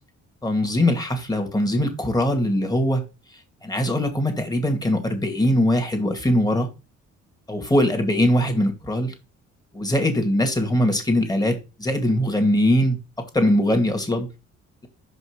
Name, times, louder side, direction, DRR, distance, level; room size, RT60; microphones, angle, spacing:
voice 1, 0.4-3.0 3.6-6.7 7.5-9.1 9.7-13.0 13.3-14.3, left 1 dB, 15° left, 2.1 m, -21 dB
5.4 x 5.3 x 5.1 m
cardioid pair, 90°, 30 cm